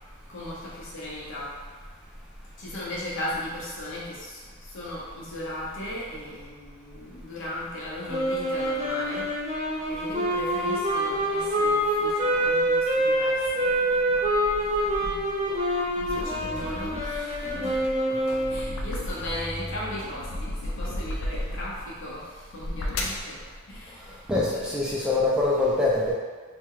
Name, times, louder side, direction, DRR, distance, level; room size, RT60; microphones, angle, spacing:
voice 1, 0.3-1.5 2.6-14.3 15.9-17.8 18.5-24.3 24.5-25.0, left 1 dB, 65° left, -6 dB, 0.9 m, -37 dB
sound 1, 8.1-18.8, right 1 dB, 30° right, 0.7 m, -26 dB
sound 2, 13.5-15.3 15.8-19.6 20.0-21.8 22.4-23.3, left 1 dB, 80° left, 0.4 m, -35 dB
sound 3, 16.1-17.9 18.3-21.1, equal, 60° right, 0.9 m, -41 dB
voice 2, 24.3-26.1, left 2 dB, 5° right, -6 dB, 0.3 m, -24 dB
2.8 x 2.2 x 3.6 m, 1.5 s
head